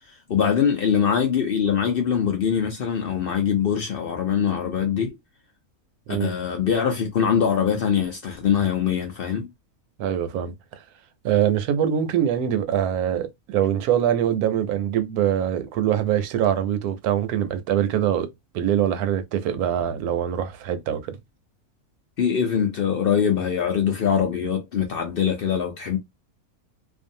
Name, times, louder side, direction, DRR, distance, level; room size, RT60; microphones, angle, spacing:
voice 1, 0.3-5.1 6.2-9.5 22.2-26.0, left 7 dB, 70° left, 0.5 m, -23 dB
voice 2, 10.0-10.5 11.2-18.3 18.5-21.2, right 10 dB, 80° right, 1.1 m, -23 dB
2.6 x 2.3 x 2.6 m
omnidirectional pair, 1.6 m